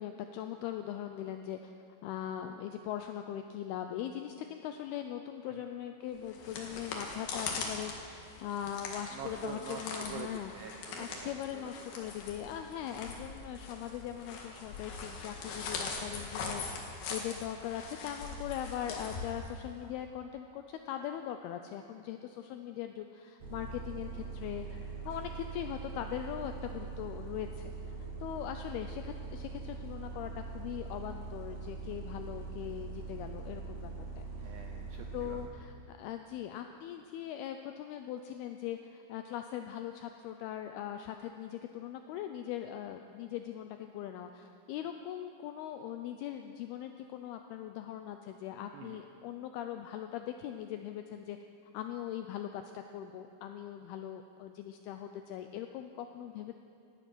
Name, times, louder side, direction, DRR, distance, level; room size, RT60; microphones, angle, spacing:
voice 1, 0.0-1.7 2.0-10.5 11.0-24.8 25.1-27.7 28.0-34.2 35.1-51.4 51.7-56.6, left 10 dB, 85° left, 6 dB, 2.2 m, -40 dB
sound 1, 6.1-19.9, left 4 dB, 65° left, 3.3 m, -42 dB
voice 2, 9.1-11.7 18.9-19.1 34.4-35.4 48.7-49.0, right 7 dB, 85° right, 4 dB, 2.1 m, -46 dB
Bus, 23.4-35.5, right 4 dB, 55° right, 2.2 m, -42 dB
18.0 x 12.0 x 6.1 m, 2.5 s
omnidirectional pair, 5.1 m